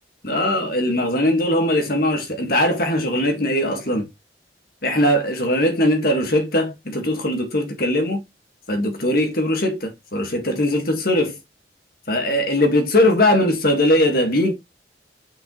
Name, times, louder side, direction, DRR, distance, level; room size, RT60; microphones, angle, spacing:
voice 1, 0.2-4.1 4.8-8.2 8.7-11.4 12.1-14.5, left 1 dB, 55° left, 1.7 m, -20 dB
6.5 x 5.5 x 3.1 m
head